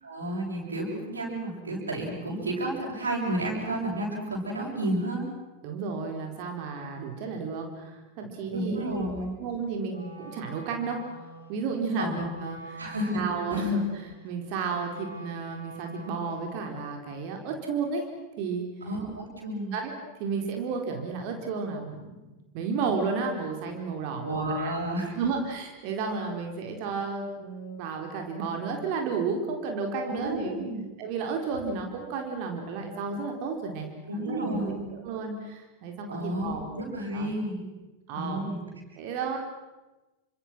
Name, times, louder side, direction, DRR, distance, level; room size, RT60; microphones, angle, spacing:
voice 1, 0.0-5.2 8.5-9.3 12.0-12.2 12.8-13.2 13.5-13.6 18.8-19.8 24.2-25.1 30.0-30.8 34.1-34.8 36.1-37.7 38.1-38.6, right 1 dB, 75° right, -2 dB, 7.7 m, -31 dB
voice 2, 5.6-8.8 9.4-11.0 11.5-12.8 13.1-18.1 18.4-18.7 19.7-19.9 20.2-22.1 22.5-24.7 25.1-30.6 31.0-36.7 37.1-37.3 38.1-38.4 39.0-39.4, right 4 dB, 45° right, 3 dB, 4.4 m, -32 dB
Wind instrument woodwind instrument, 9.8-16.6, right 2 dB, 90° left, 4.9 m, -46 dB
29.5 x 25.5 x 6.3 m, 1.1 s
figure-of-eight pair, 90°, 0 cm